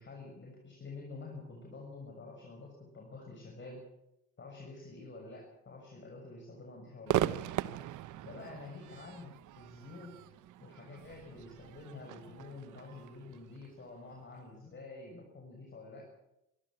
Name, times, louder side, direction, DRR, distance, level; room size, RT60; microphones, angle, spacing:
voice 1, 0.0-3.8 4.4-7.3 8.2-10.2 10.6-16.1, left 3 dB, 40° left, 0 dB, 6.6 m, -48 dB
Crowd / Fireworks, 7.1-14.4, right 13 dB, 85° right, 1.0 m, -39 dB
24.5 x 13.5 x 8.8 m, 0.87 s
cardioid pair, 90°, 30 cm